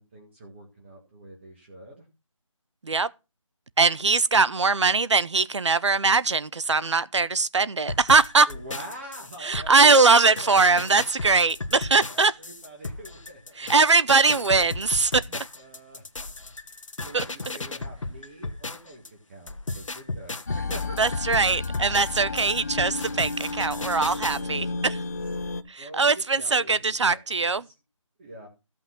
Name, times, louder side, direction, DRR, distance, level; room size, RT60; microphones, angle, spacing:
voice 1, 0.0-2.1 8.5-11.0 12.1-13.7 15.2-21.0 22.2-22.5 24.0-25.1 25.8-27.7 28.2-28.5, right 1 dB, 20° right, 2.0 m, -45 dB
voice 2, 3.8-8.5 9.4-12.3 13.6-15.2 17.1-17.2 21.0-25.0 25.7-27.6, right 4 dB, 60° right, 0.8 m, -21 dB
sound 1, 7.9-19.1 19.5-24.4, left 3 dB, 70° left, 1.4 m, -35 dB
sound 2, 20.5-25.6, left 3 dB, 30° left, 0.6 m, -32 dB
15.0 x 5.9 x 6.0 m
figure-of-eight pair, 170°, 17 cm